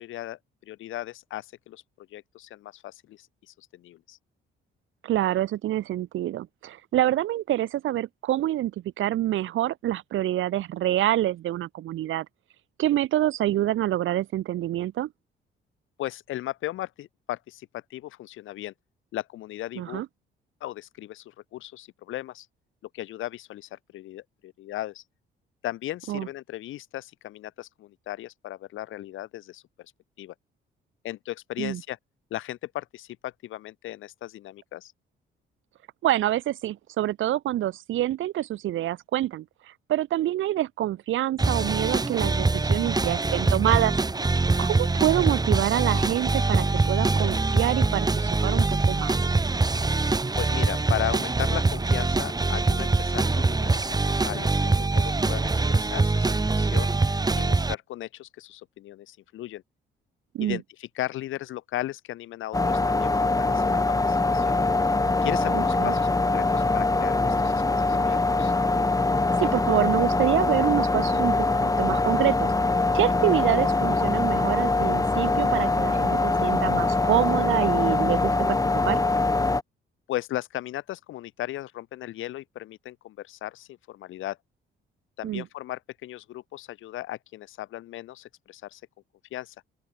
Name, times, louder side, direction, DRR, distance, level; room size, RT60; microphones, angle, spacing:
voice 1, 0.0-4.2 16.0-18.7 19.1-20.0 20.6-22.5 22.9-25.0 25.6-29.6 30.2-30.3 31.0-32.0 32.3-34.9 50.4-56.9 57.4-59.6 60.4-64.6 65.2-68.5 80.1-84.4 85.2-88.8 89.3-89.5, left 14 dB, 85° left, 3.0 m, -36 dB
voice 2, 5.0-8.7 9.0-12.3 12.8-15.1 19.8-20.1 26.1-26.3 31.6-31.8 36.0-39.5 39.9-43.9 44.6-49.2 60.3-60.6 65.5-65.9 69.4-72.5 72.9-78.6 78.8-79.0 85.2-85.5, right 13 dB, 80° right, 1.8 m, -26 dB
sound 1, 41.4-57.7, right 3 dB, 20° right, 2.0 m, -24 dB
sound 2, 62.5-79.6, left 3 dB, 15° left, 2.1 m, -23 dB
open air
cardioid pair, 90°, 20 cm